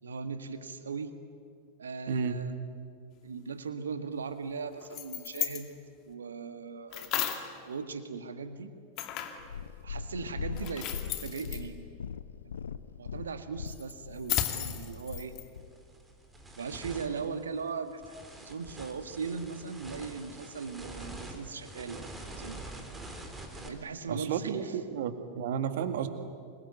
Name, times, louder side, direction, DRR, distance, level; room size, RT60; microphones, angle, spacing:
voice 1, 0.0-1.1 1.8-2.5 3.2-5.7 6.0-7.1 7.6-8.7 9.8-11.9 12.4-12.5 13.0-15.3 16.6-22.6 23.6-24.8, right 5 dB, 70° right, 10 dB, 1.8 m, -39 dB
voice 2, 2.1-2.4 24.1-26.1, right 7 dB, 55° right, 9 dB, 2.0 m, -32 dB
sound 1, 4.8-5.6 6.9-7.5 9.0-9.5 10.6-11.6 13.7-15.5, left 12 dB, 40° left, 2.5 m, -34 dB
Purr, 9.4-15.7 16.5-16.6, left 7 dB, 70° left, 0.8 m, -40 dB
sound 2, 14.8-15.0 15.5-23.7, right 2 dB, 10° right, 3.8 m, -45 dB
26.5 x 22.0 x 9.4 m, 2.2 s
figure-of-eight pair, 90°, 0 cm